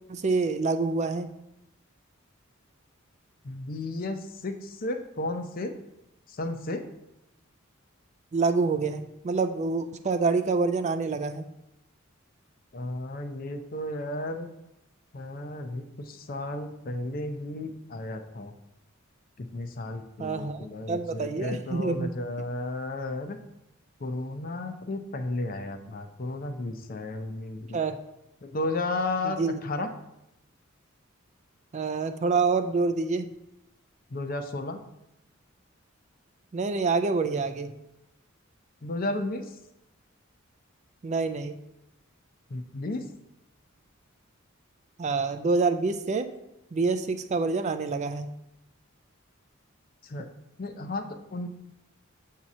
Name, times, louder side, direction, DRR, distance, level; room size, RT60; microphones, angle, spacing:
voice 1, 0.1-1.3 8.3-11.5 20.2-22.1 27.7-28.0 29.2-29.6 31.7-33.3 36.5-37.7 41.0-41.5 45.0-46.3 46.7-48.3 50.2-50.3, right 4 dB, 35° right, 9 dB, 0.4 m, -27 dB
voice 2, 3.4-5.7 6.3-6.8 12.7-14.5 15.1-18.5 19.4-23.4 24.0-27.8 28.4-29.9 34.1-34.8 38.8-39.4 42.5-43.0 50.0-50.3 50.6-51.5, left 2 dB, 45° left, 7 dB, 0.6 m, -33 dB
7.5 x 2.8 x 6.0 m, 0.86 s
head